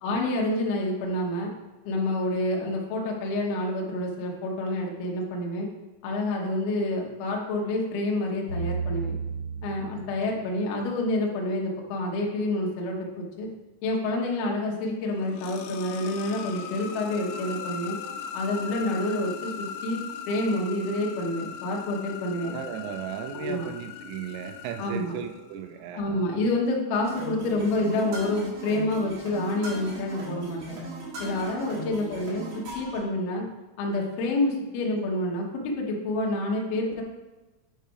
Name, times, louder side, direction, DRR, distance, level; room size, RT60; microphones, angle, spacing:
voice 1, 0.0-1.5 1.8-5.7 6.0-9.2 9.6-13.5 13.8-18.0 18.3-20.0 20.3-22.5 23.3-23.7 24.8-25.1 25.9-30.8 31.2-33.5 33.8-37.0, left 1 dB, 70° left, -1 dB, 2.5 m, -28 dB
sound 1, 8.5-10.9, right 4 dB, 35° right, 1.8 m, -33 dB
sound 2, 15.0-25.8, left 7 dB, 90° left, 2.5 m, -39 dB
voice 2, 22.4-26.2 31.9-32.2, right 10 dB, 85° right, 7 dB, 3.1 m, -36 dB
sound 3, 27.0-33.0, right 1 dB, 55° right, 2.4 m, -38 dB
9.1 x 3.3 x 4.7 m, 1.1 s
omnidirectional pair, 5.8 m